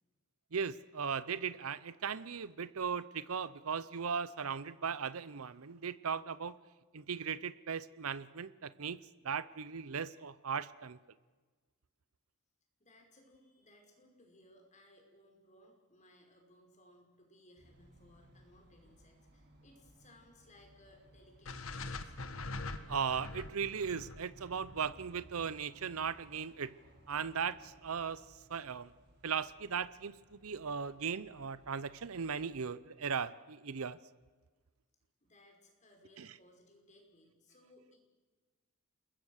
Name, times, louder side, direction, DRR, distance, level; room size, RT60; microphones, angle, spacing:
voice 1, 0.5-6.6 6.9-9.0 9.2-11.0 22.9-26.7 27.1-28.2 28.5-28.9 29.2-34.0 36.2-36.3, right 6 dB, 80° right, 16 dB, 0.7 m, -37 dB
voice 2, 12.8-22.1 35.2-38.0, left 1 dB, 35° left, 2 dB, 5.5 m, -63 dB
sound 1, 17.6-32.6, right 1 dB, 50° right, 5.5 m, -62 dB
sound 2, 21.5-25.6, left 3 dB, 70° left, 1.6 m, -44 dB
27.5 x 22.0 x 6.5 m, 1.4 s
head